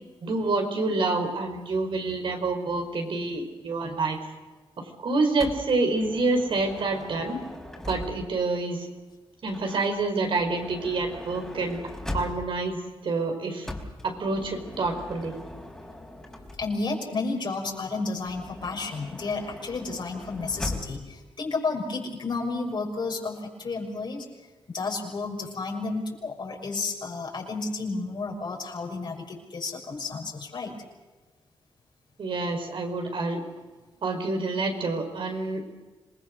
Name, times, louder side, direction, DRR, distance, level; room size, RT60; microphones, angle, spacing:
voice 1, 0.2-4.2 4.8-7.4 7.9-8.9 9.4-11.8 12.1-12.8 13.0-13.7 14.0-15.3 32.2-33.4 34.0-35.6, right 3 dB, 65° right, 4 dB, 4.8 m, -27 dB
Motor vehicle (road) / Sliding door, 5.4-8.5 9.4-12.7 13.6-16.9 18.2-21.1, left 1 dB, 5° left, 4.4 m, -40 dB
voice 2, 16.6-24.3 24.7-30.7, left 3 dB, 55° left, 1 dB, 6.1 m, -32 dB
27.0 x 20.5 x 6.5 m, 1.3 s
wide cardioid pair, 105°, 9 cm